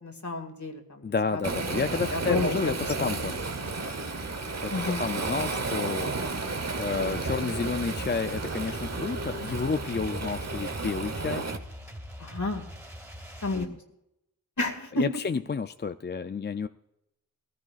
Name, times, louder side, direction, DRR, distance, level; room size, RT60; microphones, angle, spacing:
voice 1, 0.0-1.0 1.3-1.4 2.1-2.7 3.0-3.1 4.7-5.1 12.2-12.7 13.4-13.7 14.6-15.0, left 2 dB, 55° left, 4 dB, 2.1 m, -30 dB
voice 2, 1.0-3.4 4.6-6.1 6.8-11.5 13.5-13.8 14.9-16.7, left 5 dB, 30° left, 9 dB, 0.4 m, -31 dB
Waves surf, 1.4-11.6, right 3 dB, 50° right, 1.1 m, -32 dB
sound 1, 7.1-13.6, equal, 10° right, 3.1 m, -42 dB
20.5 x 15.0 x 2.4 m, 0.85 s
wide cardioid pair, 65°, 35 cm